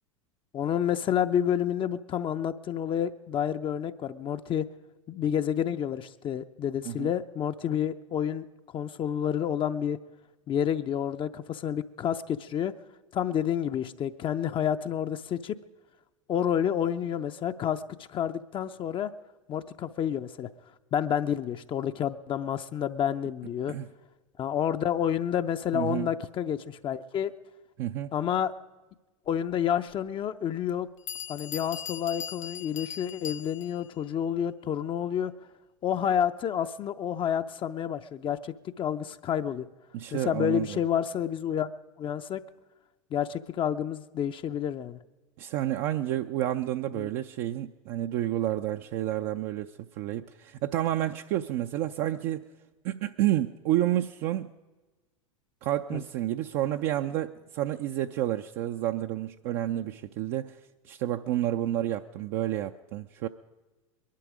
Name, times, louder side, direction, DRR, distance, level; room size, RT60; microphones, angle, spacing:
voice 1, 0.5-4.7 5.1-8.4 8.7-10.0 10.5-12.7 13.1-15.6 16.3-17.8 18.1-19.1 19.5-20.5 20.9-23.7 24.4-27.3 28.1-28.5 29.3-30.9 31.3-35.3 35.8-39.7 40.1-41.7 42.0-42.4 43.1-45.0 46.9-47.1 55.9-56.0, left 9 dB, 30° left, 8 dB, 0.6 m, -29 dB
voice 2, 25.7-26.1 27.8-28.1 39.9-40.8 45.4-52.4 52.8-54.5 55.6-60.6 60.8-63.3, right 13 dB, 50° right, 6 dB, 0.5 m, -30 dB
Bell, 29.9-30.0 30.7-30.8 31.1-33.9, left 9 dB, 75° left, 0.4 m, -39 dB
22.0 x 11.5 x 5.0 m, 1.2 s
hypercardioid pair, 90°, 16 cm